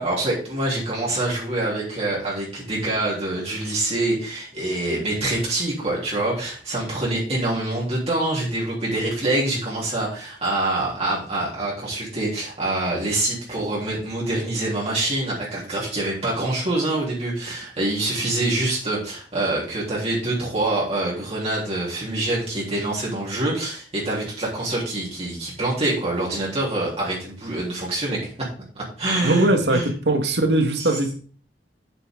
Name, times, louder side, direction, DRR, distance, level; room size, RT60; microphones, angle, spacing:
voice 1, 0.0-28.5 28.8-29.9 30.8-31.0, right 2 dB, 35° right, -6 dB, 3.6 m, -25 dB
voice 2, 29.2-31.1, right 1 dB, 70° right, 5 dB, 1.9 m, -20 dB
9.3 x 8.2 x 3.9 m, 0.41 s
head